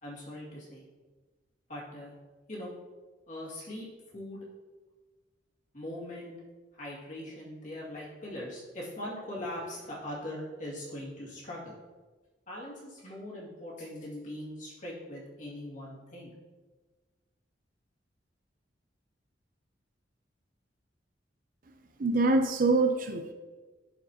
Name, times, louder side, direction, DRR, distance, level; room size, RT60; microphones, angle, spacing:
voice 1, 0.0-0.9 1.7-2.1 2.5-2.7 3.3-3.9 4.1-4.4 5.7-6.3 6.7-11.7 12.5-16.3, left 1 dB, 45° left, -5 dB, 2.2 m, -41 dB
voice 2, 22.0-23.3, right 3 dB, 50° right, 7 dB, 0.5 m, -25 dB
11.5 x 4.8 x 2.9 m, 1.3 s
head